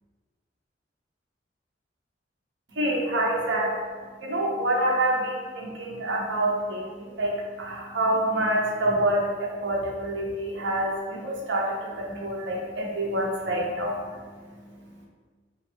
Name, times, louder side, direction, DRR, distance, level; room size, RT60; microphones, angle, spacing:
voice 1, 2.7-3.8 4.2-15.1, right 1 dB, 75° right, -3 dB, 1.0 m, -27 dB
5.6 x 2.5 x 3.4 m, 1.5 s
head